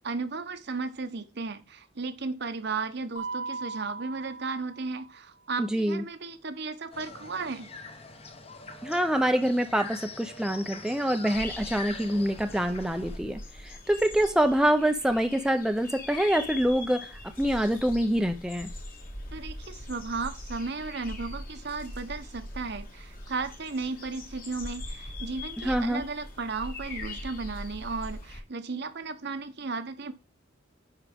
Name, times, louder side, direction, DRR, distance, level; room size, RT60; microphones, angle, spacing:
voice 1, 0.0-7.7 19.3-30.1, right 4 dB, 60° right, 0.9 m, -35 dB
Mallet percussion, 3.2-5.2, right 4 dB, 85° left, 3.3 m, -38 dB
voice 2, 5.6-6.0 8.8-18.7 25.6-26.0, equal, 5° right, 0.5 m, -26 dB
sound 1, 6.9-13.2, left 4 dB, 30° left, 1.0 m, -43 dB
sound 2, 11.3-28.4, left 1 dB, 50° left, 2.0 m, -41 dB
10.0 x 4.8 x 3.5 m
head